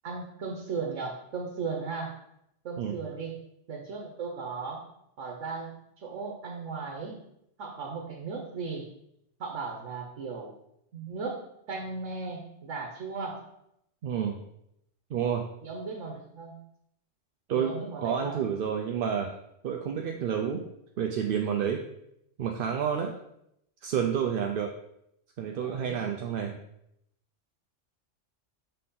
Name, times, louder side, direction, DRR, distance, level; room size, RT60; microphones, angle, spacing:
voice 1, 0.0-2.2 2.6-3.3 3.7-4.8 5.2-7.2 7.6-8.9 9.4-10.5 10.9-11.4 11.7-13.5 15.6-16.5 17.5-18.4 25.6-26.1, right 4 dB, 85° right, 1 dB, 1.2 m, -36 dB
voice 2, 14.0-14.4 15.1-15.4 17.5-19.3 19.6-20.6 21.0-21.8 22.4-23.1 23.8-24.7 25.4-26.6, right 8 dB, 60° right, 2 dB, 0.6 m, -29 dB
6.3 x 4.2 x 3.7 m, 0.78 s
omnidirectional pair, 1.2 m